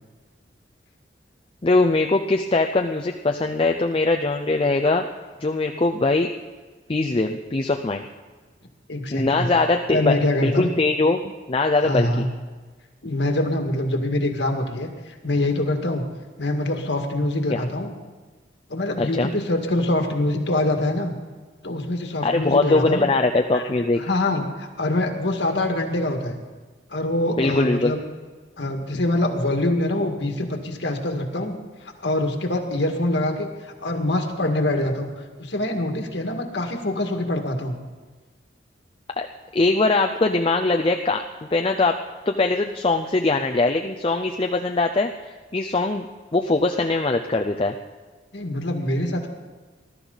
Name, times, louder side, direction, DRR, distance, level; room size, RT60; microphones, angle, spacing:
voice 1, 1.6-5.1 5.4-6.3 6.9-8.0 9.1-12.3 17.5-17.6 19.0-19.3 22.2-24.0 27.4-27.9 39.2-39.3 39.5-41.2 41.5-42.0 42.3-46.0 46.3-47.7, left 3 dB, 30° left, 3 dB, 0.6 m, -21 dB
voice 2, 8.9-9.5 9.9-10.7 11.8-12.3 13.0-14.9 15.2-16.0 16.4-17.9 18.7-21.1 21.6-23.1 23.5-23.6 24.0-26.3 26.9-28.0 28.6-31.5 31.8-35.1 35.4-37.8 48.3-49.3, left 1 dB, 75° left, 3 dB, 1.9 m, -24 dB
20.5 x 12.0 x 4.0 m, 1.4 s
head